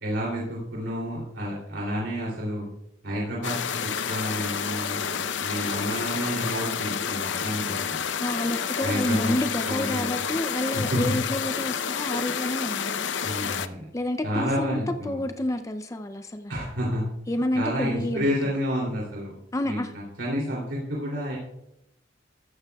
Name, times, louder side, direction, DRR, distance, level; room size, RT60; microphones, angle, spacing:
voice 1, 0.0-2.6 3.0-8.0 8.8-9.3 9.6-10.1 10.7-11.1 13.2-13.8 14.2-15.2 16.5-17.1 17.5-19.3 19.6-21.4, equal, 80° right, -3 dB, 2.9 m, -30 dB
sound 1, 3.4-13.7, left 7 dB, 80° left, 0.6 m, -29 dB
voice 2, 8.2-13.1 13.9-16.5 17.3-18.3 19.5-19.9, left 1 dB, 15° left, 8 dB, 0.5 m, -29 dB
14.5 x 13.0 x 2.3 m, 0.83 s
head